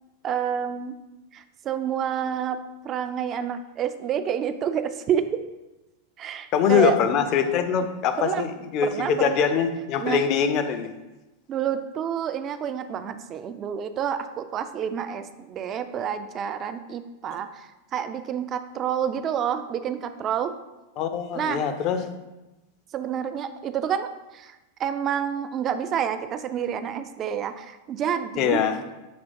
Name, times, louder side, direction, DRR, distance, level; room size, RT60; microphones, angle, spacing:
voice 1, 0.2-1.0 1.3-5.4 6.2-7.0 8.2-8.4 8.8-9.5 10.0-10.2 11.5-20.5 21.4-21.7 22.9-28.6, right 8 dB, 35° right, 10 dB, 0.3 m, -29 dB
voice 2, 6.5-10.9 21.0-22.0 28.4-28.8, left 7 dB, 45° left, 8 dB, 0.4 m, -23 dB
6.7 x 2.8 x 2.6 m, 1.0 s
figure-of-eight pair, 90°, 0 cm